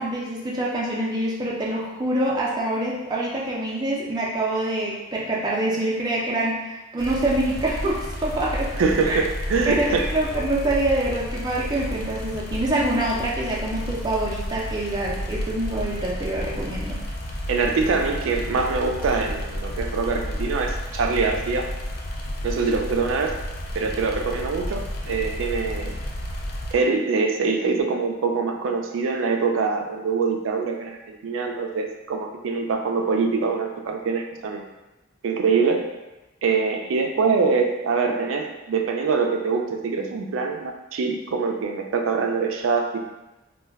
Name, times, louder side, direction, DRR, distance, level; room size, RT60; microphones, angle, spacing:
voice 1, 0.0-8.7 9.0-9.2 9.7-17.0, right 1 dB, 20° right, -4 dB, 0.4 m, -25 dB
sound 1, 7.0-26.7, equal, 50° left, 0.4 m, -31 dB
voice 2, 8.8-10.1 17.5-21.7 22.4-23.4 23.7-26.0 26.7-34.6 35.2-36.0 36.4-43.0, right 4 dB, 85° right, 3 dB, 0.4 m, -24 dB
2.2 x 2.1 x 3.4 m, 1.1 s
head